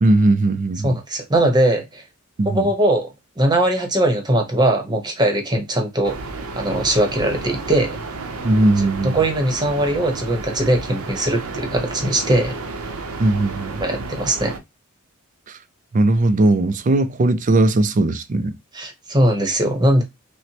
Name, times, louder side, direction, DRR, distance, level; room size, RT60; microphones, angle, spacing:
voice 1, 0.0-1.0 2.4-2.7 8.4-9.2 13.2-13.8 15.5-15.6 15.9-18.6, right 2 dB, 35° right, 0.4 m, -18 dB
voice 2, 0.8-2.0 2.4-3.1 3.4-6.2 6.6-8.0 8.8-12.6 13.8-14.5 18.7-20.0, right 1 dB, 20° right, 0.9 m, -20 dB
sound 1, 6.0-14.6, right 3 dB, 90° right, 0.7 m, -32 dB
5.7 x 2.1 x 2.8 m
head